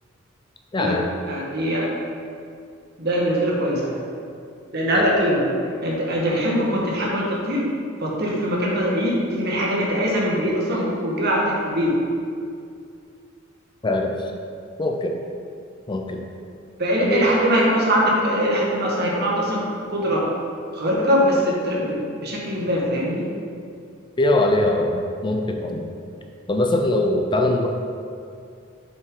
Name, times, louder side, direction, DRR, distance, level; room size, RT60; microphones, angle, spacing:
voice 1, 0.7-1.1 4.9-5.0 13.8-14.3 14.8-15.2 15.9-16.2 17.0-17.2 24.2-25.9 26.5-27.7, left 1 dB, 25° left, 3 dB, 0.5 m, -22 dB
voice 2, 1.2-1.9 3.0-4.0 4.7-5.5 5.8-7.7 8.0-12.0 16.8-20.3 20.7-23.3, equal, 55° right, -4 dB, 1.5 m, -22 dB
7.5 x 5.9 x 3.8 m, 2.4 s
head